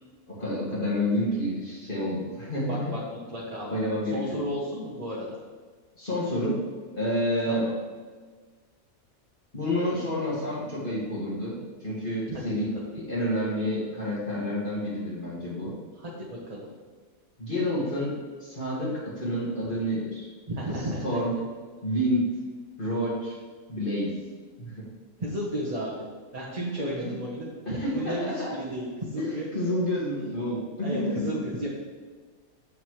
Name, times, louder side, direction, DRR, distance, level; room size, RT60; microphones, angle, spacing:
voice 1, 0.3-2.9 3.7-4.5 6.0-6.6 6.9-7.7 9.5-15.8 17.4-20.3 21.0-21.3 21.8-22.3 22.8-23.4 23.7-24.1 24.6-24.9 26.6-27.1 27.7-28.6 29.2-31.3, equal, 35° left, -7 dB, 2.2 m, -29 dB
voice 2, 2.6-3.8 4.1-5.3 7.5-7.7 12.3-12.4 16.0-16.7 20.5-21.1 25.2-26.0 26.3-29.5 30.8-31.7, equal, 30° right, -6 dB, 1.1 m, -33 dB
8.0 x 7.2 x 3.2 m, 1.5 s
omnidirectional pair, 1.5 m